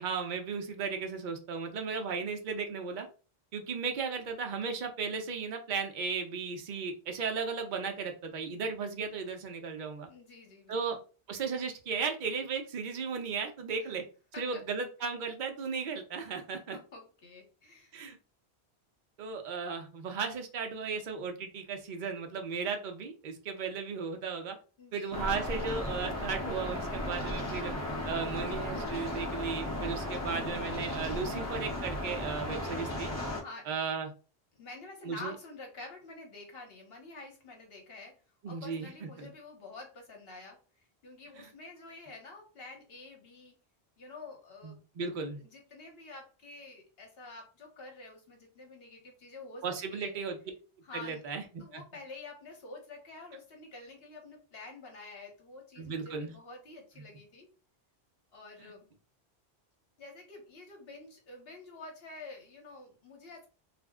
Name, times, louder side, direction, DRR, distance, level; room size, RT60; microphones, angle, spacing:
voice 1, 0.0-3.1 3.5-10.1 10.7-11.0 11.3-14.0 14.4-16.8 17.9-18.2 19.2-24.6 24.9-27.7 28.0-33.1 33.7-34.1 35.0-35.3 38.4-39.3 41.4-41.5 44.6-45.4 49.6-50.4 50.9-51.8 55.8-56.3 58.6-58.7, right 5 dB, 55° right, 5 dB, 0.7 m, -35 dB
voice 2, 10.1-11.0 13.8-13.9 14.3-14.6 16.7-17.9 24.8-25.1 33.3-33.7 34.5-40.6 41.0-43.6 44.0-44.8 45.4-49.7 49.9-50.1 50.8-51.3 51.6-57.5 58.3-58.9 60.0-63.5, left 3 dB, 65° left, 1 dB, 1.0 m, -48 dB
sound 1, 25.1-33.4, left 1 dB, 20° left, 0.5 m, -35 dB
2.5 x 2.0 x 3.4 m, 0.35 s
omnidirectional pair, 1.1 m